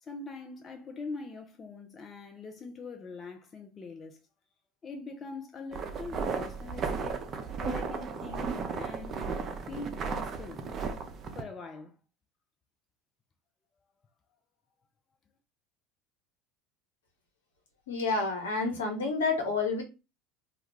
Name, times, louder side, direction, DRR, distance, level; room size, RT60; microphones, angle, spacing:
voice 1, 0.0-4.2 4.8-7.2 7.6-9.3 9.6-10.6 11.3-12.0, left 3 dB, 30° left, 0.5 m, -43 dB
sound 1, 5.7-11.4, right 5 dB, 40° right, 0.5 m, -35 dB
voice 2, 17.9-19.8, left 4 dB, 80° left, 0.8 m, -29 dB
2.3 x 2.2 x 3.0 m
hypercardioid pair, 75°, 0 cm